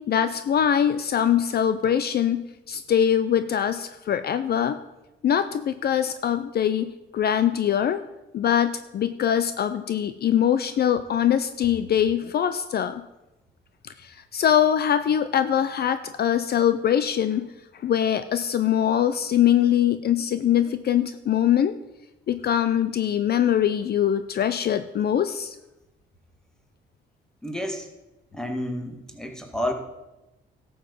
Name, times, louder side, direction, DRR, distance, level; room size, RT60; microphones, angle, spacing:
voice 1, 0.0-4.8 5.2-8.0 8.3-13.0 13.8-17.5 17.7-21.7 22.3-25.6, left 9 dB, 55° left, 12 dB, 0.5 m, -23 dB
voice 2, 27.4-27.9 28.3-29.7, left 1 dB, 5° left, 4 dB, 1.9 m, -30 dB
12.5 x 7.1 x 5.4 m, 0.98 s
cardioid pair, 90°, 20 cm